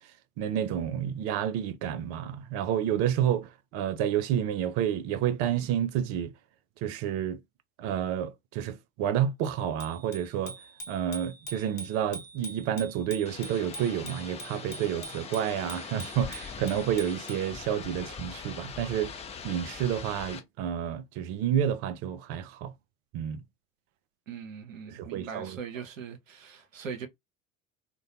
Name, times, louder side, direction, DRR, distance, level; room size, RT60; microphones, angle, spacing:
voice 1, 0.4-6.3 6.8-7.4 7.8-10.6 10.9-22.7 23.1-23.4 24.9-25.6, right 10 dB, 40° right, 0.4 m, -30 dB
Bicycle bell, 9.4-17.5, right 1 dB, 85° left, 0.8 m, -45 dB
sound 1, 13.3-20.4, left 6 dB, 15° left, 0.6 m, -42 dB
voice 2, 24.3-27.1, right 6 dB, 75° right, 0.7 m, -40 dB
2.5 x 2.1 x 2.6 m
figure-of-eight pair, 75°, 40 cm